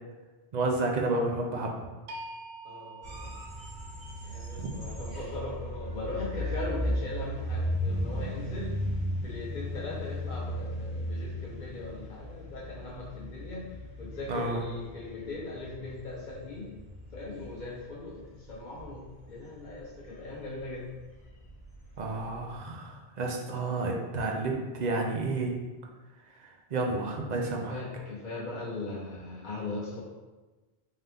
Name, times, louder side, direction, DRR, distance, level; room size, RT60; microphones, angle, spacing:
voice 1, 0.5-1.7 4.6-4.7 14.3-14.6 22.0-25.6 26.4-27.8, right 2 dB, 50° right, 1 dB, 0.6 m, -31 dB
sound 1, 2.1-8.1, right 2 dB, 80° right, 0.9 m, -49 dB
voice 2, 2.6-3.3 4.2-8.7 9.2-13.7 14.0-16.7 17.1-20.9 27.7-30.0, left 2 dB, 50° left, -6 dB, 0.8 m, -39 dB
sound 2, 3.0-22.6, equal, 15° left, 1.4 m, -36 dB
3.7 x 2.8 x 3.4 m, 1.2 s
omnidirectional pair, 1.0 m